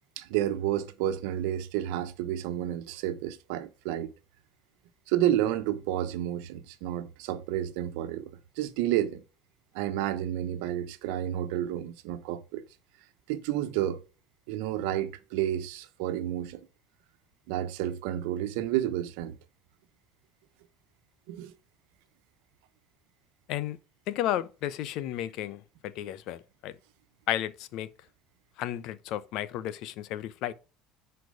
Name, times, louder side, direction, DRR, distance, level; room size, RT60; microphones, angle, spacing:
voice 1, 0.2-4.1 5.1-8.3 8.6-9.2 9.7-12.6 13.3-14.0 14.5-16.6 17.5-19.3 21.3-21.5, right 12 dB, 80° right, 1.1 m, -30 dB
voice 2, 24.1-26.7 27.3-27.9 28.6-30.5, left 12 dB, 65° left, 0.8 m, -33 dB
10.5 x 4.6 x 4.9 m
supercardioid pair, 110°, 0 cm